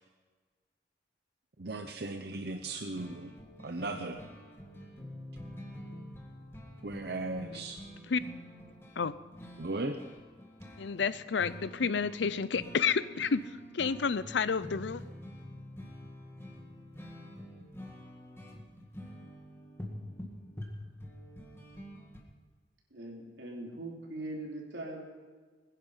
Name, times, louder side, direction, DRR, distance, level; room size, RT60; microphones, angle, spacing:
voice 1, 1.6-3.3 3.6-4.2 6.8-7.8 9.6-10.0, right 2 dB, 60° right, 5 dB, 0.8 m, -37 dB
sound 1, 2.6-22.2, equal, 15° left, 1.8 m, -47 dB
voice 2, 10.8-13.4 13.7-15.0, left 5 dB, 85° left, 16 dB, 0.6 m, -30 dB
voice 3, 22.9-25.0, right 2 dB, 85° right, -1 dB, 3.3 m, -41 dB
21.5 x 10.0 x 5.7 m, 1.4 s
head